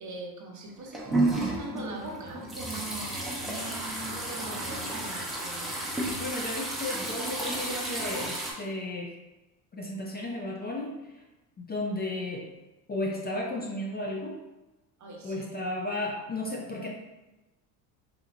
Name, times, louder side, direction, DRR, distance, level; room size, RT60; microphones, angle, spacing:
voice 1, 0.0-5.8 15.0-15.4, right 2 dB, 45° right, 0 dB, 1.0 m, -41 dB
sound 1, 0.7-8.5, right 2 dB, ahead, 0.8 m, -32 dB
voice 2, 6.1-9.1 9.7-11.2 11.7-12.5 12.9-14.4 15.2-16.9, left 1 dB, 25° left, -1 dB, 0.5 m, -34 dB
4.2 x 2.7 x 2.5 m, 1.1 s
supercardioid pair, 90°, 43 cm